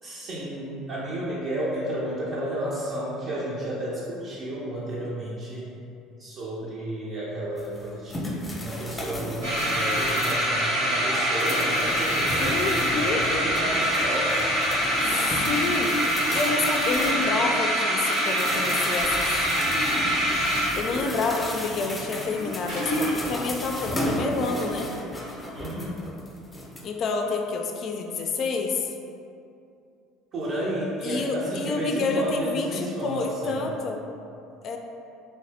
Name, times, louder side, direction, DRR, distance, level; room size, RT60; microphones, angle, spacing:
voice 1, 0.0-5.7 6.2-14.4 25.5-26.0 30.3-33.7, right 1 dB, 55° right, -8 dB, 0.6 m, -32 dB
sound 1, 7.6-10.5 10.9-17.7 18.1-26.8, left 1 dB, 20° left, 0.7 m, -34 dB
sound 2, 9.4-23.3, equal, 85° right, 1.3 m, -25 dB
voice 2, 12.4-13.2 15.0-16.1 16.3-19.7 20.7-24.9 26.8-28.9 31.0-34.0 34.6-34.8, left 3 dB, 50° left, 3 dB, 0.4 m, -28 dB
3.1 x 2.7 x 3.3 m, 2.6 s
hypercardioid pair, 70°, 0 cm